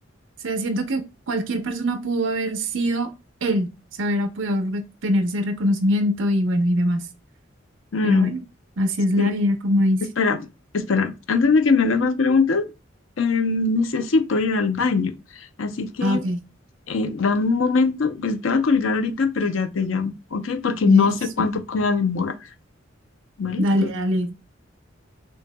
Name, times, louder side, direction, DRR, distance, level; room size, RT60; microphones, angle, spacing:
voice 1, 0.4-1.0 1.3-3.1 3.4-3.7 4.0-7.1 8.0-8.4 8.8-10.0 16.0-16.4 20.9-21.1 23.6-24.3, equal, 75° right, 0.7 m, -22 dB
voice 2, 7.9-8.3 9.2-9.3 10.2-10.5 10.7-12.7 13.2-16.2 16.9-22.3 23.4-23.9, left 4 dB, 80° left, 0.5 m, -22 dB
5.4 x 2.8 x 2.2 m
head